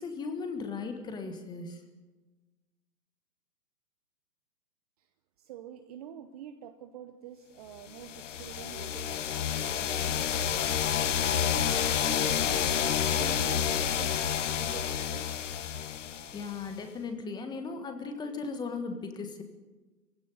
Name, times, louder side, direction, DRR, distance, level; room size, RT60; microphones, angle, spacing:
voice 1, 0.0-1.8 16.3-19.4, left 4 dB, 10° left, 7 dB, 1.5 m, -37 dB
voice 2, 5.4-15.3, right 9 dB, 25° right, 8 dB, 0.9 m, -46 dB
sound 1, 8.0-16.7, left 9 dB, 50° left, 1.2 m, -29 dB
23.0 x 16.5 x 9.2 m, 1.3 s
figure-of-eight pair, 135°, 48 cm